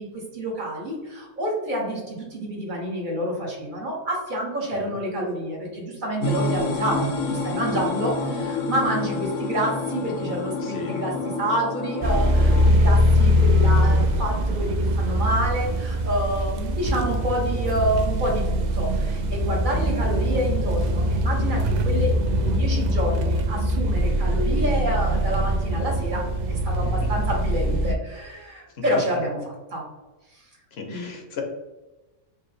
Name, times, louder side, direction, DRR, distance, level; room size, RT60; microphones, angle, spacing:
voice 1, 0.0-26.2 26.5-29.8 30.9-31.1, right 1 dB, 45° right, -1 dB, 1.0 m, -28 dB
sound 1, 6.2-12.7, left 3 dB, 85° left, 1.0 m, -28 dB
voice 2, 10.6-11.0 27.0-27.1 30.7-31.4, left 4 dB, 60° left, 2 dB, 0.9 m, -35 dB
sound 2, 12.0-27.9, equal, 70° right, 0.4 m, -22 dB
4.7 x 2.2 x 3.3 m, 1.1 s
omnidirectional pair, 1.3 m